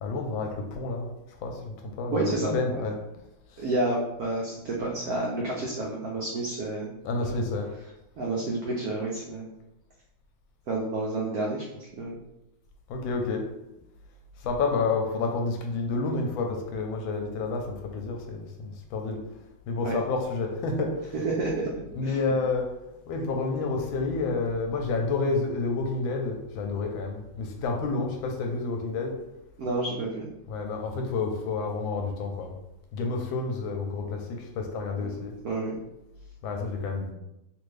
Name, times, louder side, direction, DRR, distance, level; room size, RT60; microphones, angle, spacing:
voice 1, 0.0-1.1 1.4-2.9 7.0-7.7 12.9-13.4 14.4-19.2 19.7-21.1 21.9-22.7 23.1-29.2 30.5-32.5 32.9-35.3 36.4-37.1, left 3 dB, 75° left, 3 dB, 1.3 m, -29 dB
voice 2, 2.1-2.8 3.6-6.9 7.2-7.5 8.2-9.5 10.7-12.2 19.8-20.0 21.1-21.5 22.0-22.2 29.6-30.3 35.0-35.7, right 2 dB, 85° right, -3 dB, 0.8 m, -30 dB
3.3 x 2.5 x 3.2 m, 0.89 s
omnidirectional pair, 2.3 m